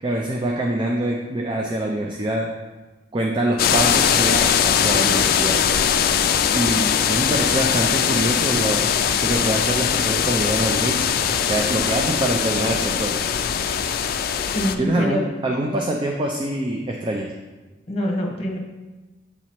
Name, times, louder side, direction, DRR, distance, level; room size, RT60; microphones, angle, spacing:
voice 1, 0.0-2.5 3.1-5.6 6.5-8.9 9.2-13.2 14.8-17.3, right 1 dB, 30° right, 0 dB, 0.4 m, -25 dB
sound 1, 3.6-14.7, left 8 dB, 55° left, 0.3 m, -21 dB
voice 2, 14.5-15.2 17.9-18.6, equal, 35° left, 0 dB, 1.0 m, -24 dB
8.0 x 3.0 x 4.4 m, 1.2 s
head